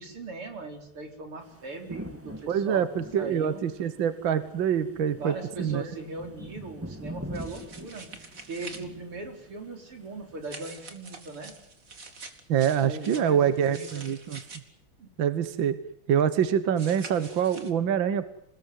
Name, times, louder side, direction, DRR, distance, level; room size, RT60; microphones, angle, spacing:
voice 1, 0.0-2.9 3.2-3.6 5.1-8.1 8.5-11.5 12.8-14.1 15.0-15.1, right 3 dB, 90° right, 5 dB, 5.4 m, -39 dB
sound 1, 1.4-10.5, right 1 dB, 5° right, 1.7 m, -44 dB
voice 2, 2.5-5.8 12.5-14.4 15.2-15.8 16.1-18.3, right 8 dB, 65° right, 13 dB, 1.9 m, -25 dB
sound 2, 7.3-8.8 10.4-14.6 16.8-17.7, right 3 dB, 40° right, 2.9 m, -45 dB
27.5 x 20.0 x 9.4 m, 0.74 s
omnidirectional pair, 2.4 m